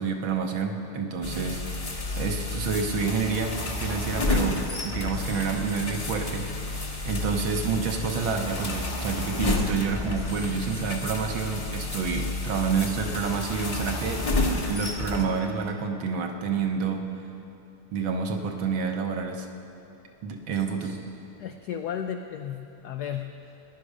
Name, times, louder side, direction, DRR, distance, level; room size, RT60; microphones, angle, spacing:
voice 1, 0.0-1.6 2.1-6.5 7.0-14.3 14.7-17.1 17.9-19.5 20.2-21.0, right 5 dB, 70° right, 3 dB, 1.8 m, -28 dB
sound 1, 1.2-15.2, left 2 dB, 30° left, 0.6 m, -30 dB
voice 2, 20.5-21.0 21.4-23.6, left 8 dB, 80° left, 6 dB, 0.8 m, -35 dB
18.0 x 11.0 x 5.0 m, 2.7 s
omnidirectional pair, 2.3 m